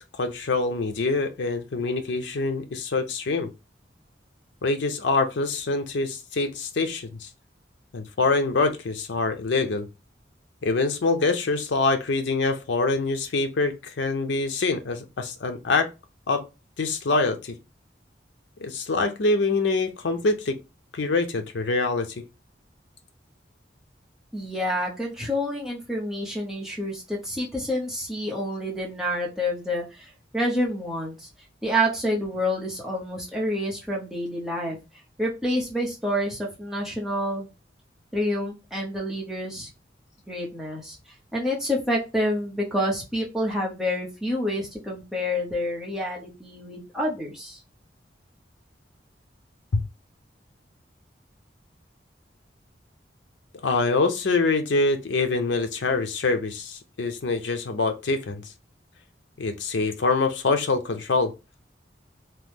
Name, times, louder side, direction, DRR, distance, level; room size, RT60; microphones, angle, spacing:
voice 1, 0.2-3.5 4.6-7.3 7.9-9.9 10.6-15.9 16.3-16.4 16.8-17.6 18.6-20.6 20.9-22.2 49.7-49.8 53.6-58.4 59.4-61.3, left 3 dB, 80° left, 0.5 m, -25 dB
voice 2, 24.3-31.3 31.6-34.8 35.2-37.5 38.1-39.7 40.3-41.0 41.3-47.6, equal, ahead, 0.9 m, -28 dB
3.0 x 2.2 x 3.4 m
head